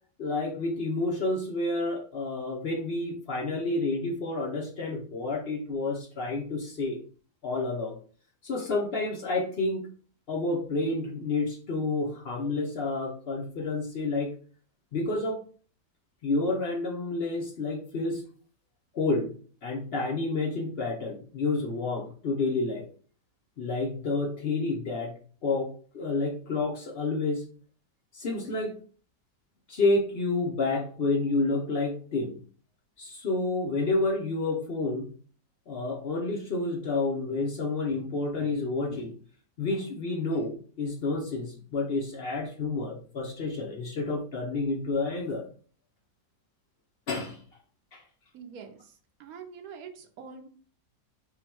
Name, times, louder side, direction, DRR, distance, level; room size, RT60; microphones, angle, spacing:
voice 1, 0.2-7.0 7.4-8.0 8.4-9.8 10.3-14.3 14.9-15.4 16.2-18.2 18.9-19.3 19.6-22.9 23.6-25.1 25.4-27.5 28.1-28.8 29.7-32.3 33.0-35.1 35.7-39.1 39.6-45.4 47.1-47.4 47.9-48.0, left 3 dB, 60° left, 1 dB, 0.6 m, -29 dB
voice 2, 48.3-48.9 49.2-50.5, right 6 dB, 65° right, 4 dB, 1.1 m, -44 dB
3.8 x 2.2 x 4.2 m, 0.43 s
omnidirectional pair, 1.8 m